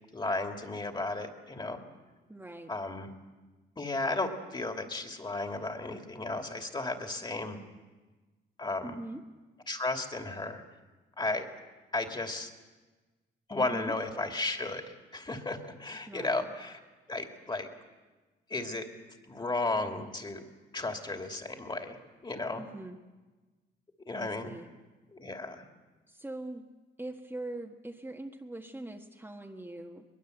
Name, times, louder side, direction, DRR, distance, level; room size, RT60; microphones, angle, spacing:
voice 1, 0.1-1.8 2.7-3.1 3.8-7.6 8.6-9.0 9.7-10.6 11.2-11.5 11.9-12.5 13.5-14.8 15.1-16.8 17.1-17.7 18.5-18.9 19.3-20.4 20.7-22.0 22.2-22.6 24.1-24.5 25.1-25.6, left 2 dB, 20° left, 5 dB, 2.8 m, -34 dB
voice 2, 2.3-2.7 8.8-9.2 13.6-13.9 16.1-16.5 22.6-23.0 24.2-24.7 26.1-26.6 27.0-30.0, right 1 dB, 10° right, 1 dB, 1.6 m, -42 dB
22.5 x 20.5 x 8.1 m, 1.3 s
cardioid pair, 90°, 20 cm